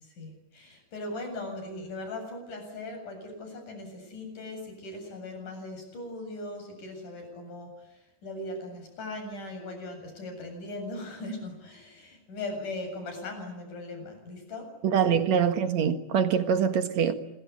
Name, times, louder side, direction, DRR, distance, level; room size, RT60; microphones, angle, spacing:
voice 1, 0.0-15.2, left 2 dB, 50° left, 4 dB, 9.2 m, -39 dB
voice 2, 14.8-17.1, right 7 dB, 55° right, 8 dB, 2.4 m, -24 dB
27.0 x 23.0 x 9.6 m, 0.85 s
omnidirectional pair, 4.6 m